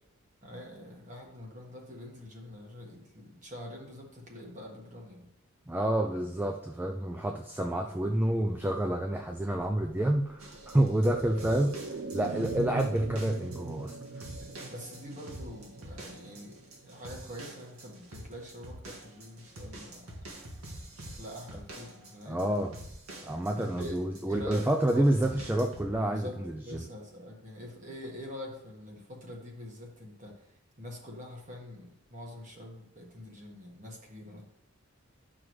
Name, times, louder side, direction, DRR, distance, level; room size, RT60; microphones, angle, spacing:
voice 1, 0.4-5.3 14.4-20.3 21.0-22.5 23.5-25.1 26.1-26.4 26.6-30.3 30.8-34.4, left 1 dB, 35° right, -1 dB, 1.6 m, -45 dB
voice 2, 5.7-14.3 22.3-22.8 23.2-26.9, right 1 dB, 10° right, 3 dB, 0.3 m, -29 dB
sound 1, 9.9-17.5 17.8-17.9, right 3 dB, 60° right, 0.6 m, -42 dB
sound 2, 10.4-25.9, right 1 dB, 85° right, 1.9 m, -46 dB
11.0 x 6.1 x 3.1 m, 0.78 s
head